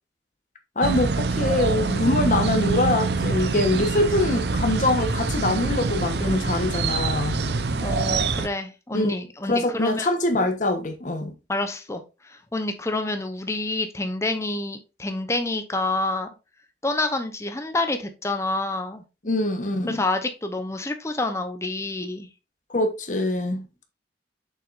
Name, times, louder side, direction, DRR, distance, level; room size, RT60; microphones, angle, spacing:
voice 1, 0.8-7.4 8.9-9.1 9.5-11.3 19.2-20.0 22.7-23.7, left 2 dB, 45° left, 1.2 m, -24 dB
sound 1, 0.8-8.5, right 3 dB, 70° right, 0.7 m, -25 dB
voice 2, 7.8-10.1 11.5-16.3 16.8-19.0 19.9-22.3, left 2 dB, 15° left, 0.8 m, -28 dB
7.0 x 5.8 x 2.6 m
head